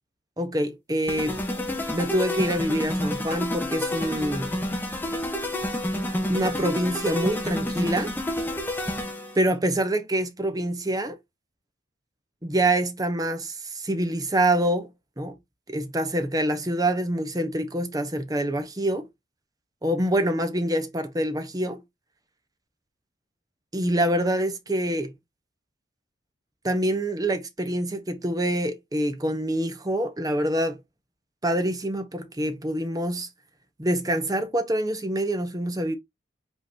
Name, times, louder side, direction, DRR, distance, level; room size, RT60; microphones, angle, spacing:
voice 1, 0.4-1.4 1.9-4.6 6.3-8.1 9.4-11.2 12.4-14.9 15.2-15.3 15.7-19.1 19.8-21.8 23.7-25.1 26.6-30.8 31.4-33.3 33.8-35.9, right 1 dB, 20° right, 0.8 m, -26 dB
sound 1, 1.1-9.4, left 1 dB, 10° left, 1.0 m, -29 dB
4.9 x 3.9 x 2.6 m
head